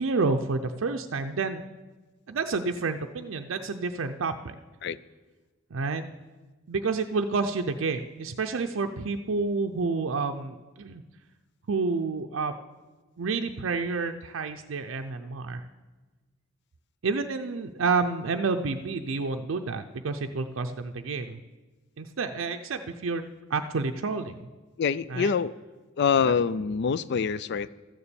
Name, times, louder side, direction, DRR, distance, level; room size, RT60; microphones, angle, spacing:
voice 1, 0.0-1.6 2.3-4.6 5.7-6.0 6.7-11.0 11.7-12.5 13.2-15.7 17.0-21.4 22.0-23.2 23.5-24.4 25.1-25.3 26.2-26.4, right 4 dB, 70° right, 5 dB, 0.5 m, -29 dB
voice 2, 24.8-25.5 26.0-27.7, left 6 dB, 55° left, 18 dB, 0.4 m, -25 dB
13.5 x 7.0 x 6.8 m, 1.2 s
head